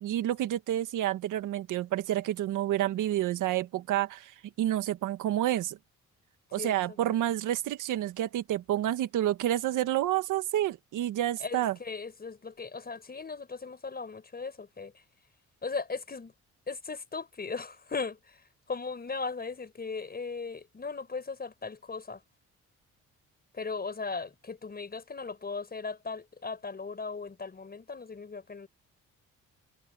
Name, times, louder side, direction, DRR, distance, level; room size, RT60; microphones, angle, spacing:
voice 1, 0.0-5.8 6.5-11.7, right 13 dB, 85° right, 1.7 m, -29 dB
voice 2, 11.4-15.0 15.6-16.3 16.7-22.2 23.5-28.7, left 4 dB, 30° left, 6.1 m, -38 dB
cardioid pair, 90°, 30 cm